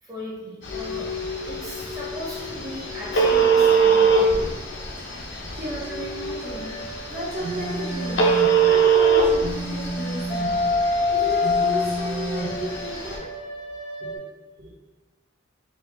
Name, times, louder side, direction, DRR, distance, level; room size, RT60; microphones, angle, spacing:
voice 1, 0.0-1.1 1.4-4.4, equal, 20° right, -6 dB, 1.2 m, -37 dB
Telephone, 0.6-13.2, right 5 dB, 65° left, 0.7 m, -23 dB
sound 1, 0.7-4.7 5.8-9.4 9.9-14.2, left 4 dB, 25° left, 0.6 m, -30 dB
voice 2, 5.5-6.8 7.1-8.3 8.6-13.3 14.0-14.3 14.6-14.7, right 1 dB, 45° right, -10 dB, 1.4 m, -34 dB
Telephone 2, 7.4-8.6 9.4-10.6 11.4-12.6, right 2 dB, 75° right, 1.4 m, -31 dB
4.2 x 2.7 x 3.8 m, 1.2 s
head